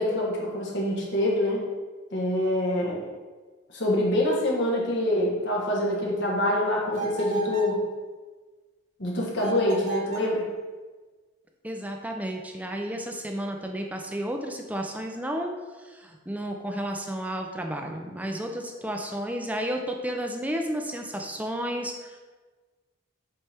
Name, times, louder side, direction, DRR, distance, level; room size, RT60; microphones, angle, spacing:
voice 1, 0.0-1.6 2.1-3.0 3.7-7.8 9.0-10.5, left 1 dB, 60° left, -2 dB, 1.4 m, -25 dB
sound 1, 6.9-7.8 9.4-10.4, right 3 dB, 40° right, 1.2 m, -34 dB
voice 2, 11.6-22.2, equal, 10° right, 3 dB, 0.5 m, -32 dB
7.5 x 4.3 x 3.5 m, 1.3 s
head